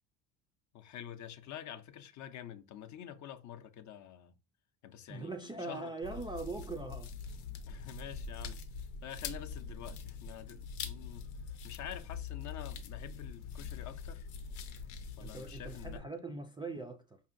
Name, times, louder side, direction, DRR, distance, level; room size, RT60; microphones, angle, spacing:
voice 1, 0.7-4.3 4.8-5.9 7.7-8.6 9.0-11.3 11.6-14.3 15.2-16.1, left 10 dB, 45° left, 0.5 m, -47 dB
voice 2, 5.1-7.1 15.2-17.2, right 3 dB, 15° right, 0.3 m, -41 dB
sound 1, 6.0-16.0, left 5 dB, 85° left, 0.7 m, -43 dB
4.7 x 2.7 x 2.5 m
supercardioid pair, 95°, 39 cm